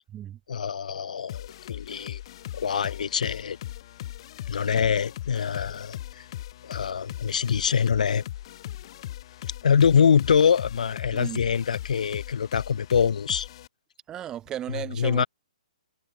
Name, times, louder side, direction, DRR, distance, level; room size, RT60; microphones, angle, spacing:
voice 1, 0.5-2.2 2.5-3.6 4.5-6.2 6.6-8.2 9.4-13.5 14.7-15.3, left 7 dB, 70° left, 4.8 m, -24 dB
sound 1, 1.3-13.7, left 13 dB, 40° left, 6.1 m, -39 dB
voice 2, 14.1-15.2, right 11 dB, 15° right, 2.2 m, -35 dB
hypercardioid pair, 155°, 4 cm